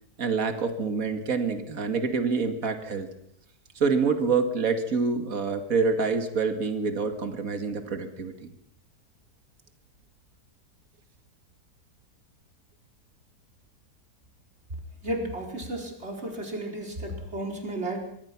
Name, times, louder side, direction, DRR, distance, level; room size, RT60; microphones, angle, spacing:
voice 1, 0.2-3.1 3.8-8.5, right 4 dB, 55° right, 7 dB, 2.5 m, -26 dB
voice 2, 15.0-18.0, right 1 dB, 40° right, 2 dB, 4.7 m, -33 dB
24.5 x 24.0 x 6.0 m, 0.72 s
omnidirectional pair, 1.8 m